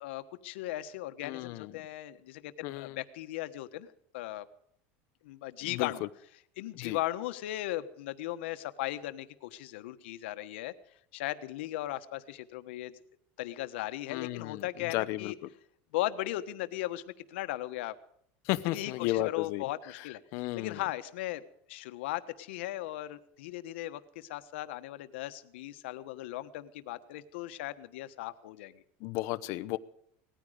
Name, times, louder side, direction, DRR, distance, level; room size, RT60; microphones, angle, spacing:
voice 1, 0.0-3.9 4.1-4.5 5.2-6.0 6.6-10.7 11.1-12.9 13.4-15.4 15.9-17.0 17.3-17.9 18.7-20.2 20.5-21.4 21.7-28.8, left 15 dB, 85° left, 11 dB, 1.3 m, -37 dB
voice 2, 1.2-1.8 2.6-3.0 5.6-6.1 6.7-7.0 14.1-15.3 18.4-19.6 20.3-20.8 29.0-29.8, left 17 dB, 50° left, 12 dB, 0.9 m, -33 dB
19.0 x 14.0 x 5.1 m, 0.68 s
cardioid pair, 170°, 6 cm